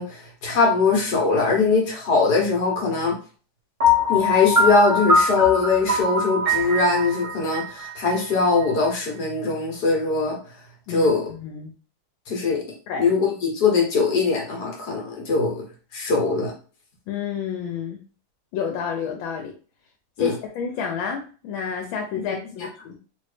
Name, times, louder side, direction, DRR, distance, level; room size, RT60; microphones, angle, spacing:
voice 1, 0.0-3.1 4.1-10.4 10.9-11.3 12.3-12.6 13.0-15.6 15.9-16.5 20.2-20.3 22.3-22.4, left 4 dB, 60° left, -1 dB, 1.5 m, -21 dB
Piano, 3.8-8.6, left 2 dB, 60° right, 0.3 m, -22 dB
voice 2, 10.9-11.7 12.9-13.0 17.1-18.0 18.5-19.5 20.2-23.0, left 7 dB, 85° left, 3 dB, 1.4 m, -30 dB
3.1 x 2.8 x 3.2 m, 0.38 s
omnidirectional pair, 2.1 m